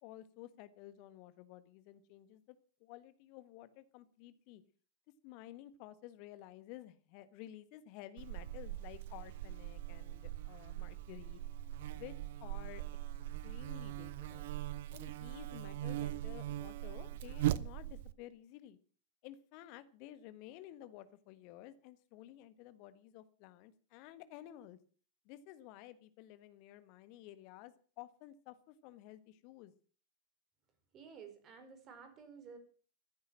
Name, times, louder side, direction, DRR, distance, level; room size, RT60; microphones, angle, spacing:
voice 1, 0.0-4.6 5.2-11.4 11.9-12.1 12.4-12.8 13.4-14.5 14.9-18.8 19.2-24.8 25.2-29.7, left 14 dB, 45° left, 13 dB, 1.4 m, -53 dB
Buzz, 8.2-18.1, right 13 dB, 55° right, 0.7 m, -40 dB
voice 2, 30.9-32.6, right 6 dB, 30° right, 8 dB, 4.8 m, -53 dB
15.0 x 10.5 x 7.4 m, 0.43 s
figure-of-eight pair, 90°, 0 cm